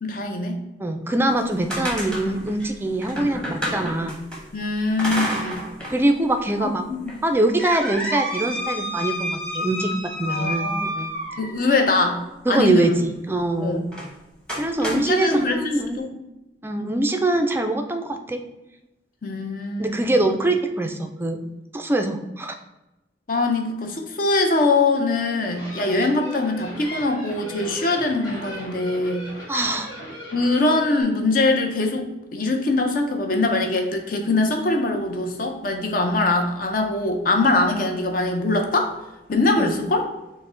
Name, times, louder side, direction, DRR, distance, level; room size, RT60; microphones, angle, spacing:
voice 1, 0.0-0.6 4.5-5.6 6.6-7.1 10.3-10.9 11.4-12.2 12.5-12.9 13.6-13.8 14.8-16.1 19.2-20.1 23.3-29.3 30.3-39.0 39.3-40.0, left 2 dB, 50° left, 4 dB, 0.6 m, -22 dB
voice 2, 0.8-4.2 5.9-6.9 7.2-9.9 10.2-11.1 12.5-13.9 14.5-16.0 16.6-18.4 19.8-21.4 21.7-22.5 29.5-29.9 39.6-39.8, right 2 dB, 10° right, 5 dB, 0.3 m, -23 dB
sound 1, 1.3-4.4 5.0-6.0 6.4-6.5 7.1-11.7 13.9-14.1 14.5-15.4, equal, 5° left, 0.9 m, -30 dB
sound 2, 25.3-31.0, equal, 25° left, 1.4 m, -38 dB
5.7 x 2.1 x 3.7 m, 0.97 s
head